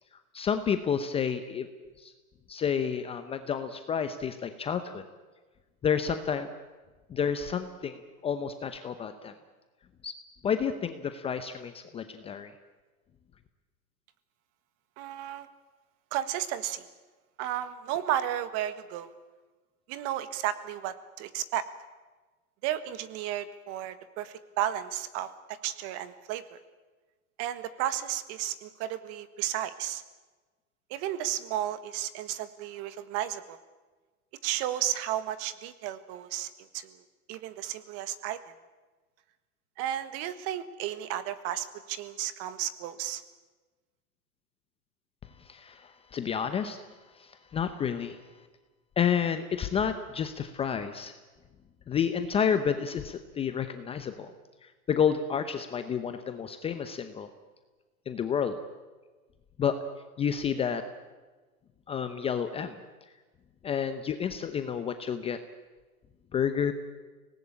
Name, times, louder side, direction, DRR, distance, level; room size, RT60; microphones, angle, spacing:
voice 1, 0.3-1.7 2.0-2.1 2.5-5.0 5.8-6.5 7.1-9.3 10.0-10.1 10.4-12.5 45.5-46.8 47.2-48.2 49.0-51.1 51.9-54.3 54.9-57.3 58.1-58.6 59.6-59.8 60.2-60.8 61.9-62.8 63.6-65.4 66.3-66.7, left 7 dB, 15° left, 9 dB, 0.8 m, -30 dB
voice 2, 15.0-15.5 16.1-16.8 17.4-19.1 19.9-21.6 22.6-25.3 25.6-26.6 27.4-30.0 30.9-33.6 34.4-36.9 37.3-38.4 39.8-43.2, right 12 dB, 35° right, 13 dB, 1.5 m, -33 dB
25.0 x 19.0 x 8.8 m, 1.3 s
hypercardioid pair, 135°, 44 cm